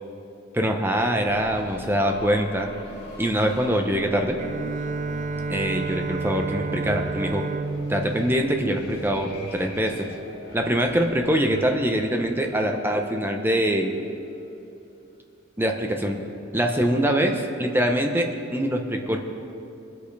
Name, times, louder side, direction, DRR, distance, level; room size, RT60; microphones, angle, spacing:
voice 1, 0.5-2.7 3.2-4.4 5.5-7.5 7.9-10.1 10.5-14.0 15.6-16.2 16.5-19.2, equal, 10° right, 3 dB, 0.8 m, -24 dB
sound 1, 1.2-13.9, left 1 dB, 50° left, 1.8 m, -41 dB
Bowed string instrument, 4.4-9.6, right 3 dB, 40° right, 0.3 m, -31 dB
21.5 x 8.3 x 3.4 m, 2.7 s
head